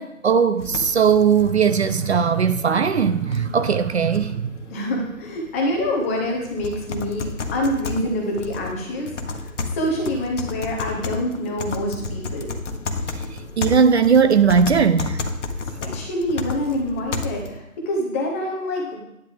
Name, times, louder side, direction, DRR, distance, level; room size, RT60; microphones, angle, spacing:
voice 1, 0.0-4.5 13.6-15.2, right 6 dB, 50° right, 11 dB, 0.6 m, -18 dB
sound 1, 0.6-17.6, left 3 dB, 55° left, 1.2 m, -32 dB
voice 2, 4.7-12.6 15.8-19.0, left 1 dB, 10° left, -1 dB, 0.7 m, -26 dB
10.0 x 9.4 x 3.5 m, 0.84 s
figure-of-eight pair, 145°, 43 cm